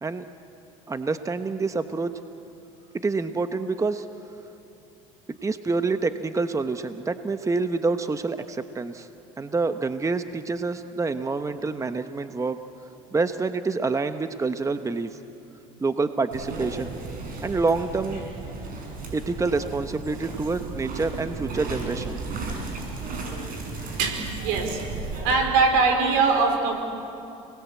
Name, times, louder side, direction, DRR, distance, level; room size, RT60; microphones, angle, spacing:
voice 1, 0.9-2.1 2.9-4.1 5.3-9.1 9.4-12.6 13.1-15.2 15.8-16.9 17.4-18.2 19.1-22.2, right 3 dB, 20° right, 9 dB, 1.1 m, -27 dB
sound 1, 16.3-25.3, right 3 dB, 55° right, 7.2 m, -34 dB
voice 2, 24.0-24.8 25.2-26.7, right 4 dB, 80° right, 4 dB, 4.7 m, -22 dB
29.5 x 20.0 x 8.5 m, 2.7 s
supercardioid pair, 85°, 17 cm